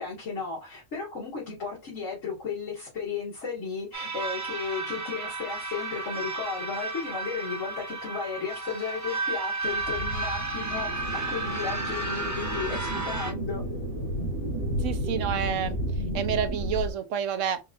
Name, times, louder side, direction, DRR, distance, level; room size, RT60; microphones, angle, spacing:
voice 1, 0.0-13.6, left 5 dB, 80° left, 2.4 m, -34 dB
sound 1, 3.9-13.3, right 3 dB, 20° right, 0.6 m, -33 dB
sound 2, 9.6-16.9, equal, 55° left, 2.0 m, -32 dB
voice 2, 14.8-15.8 16.1-17.6, right 8 dB, 80° right, 1.0 m, -29 dB
5.6 x 2.4 x 2.4 m
omnidirectional pair, 1.3 m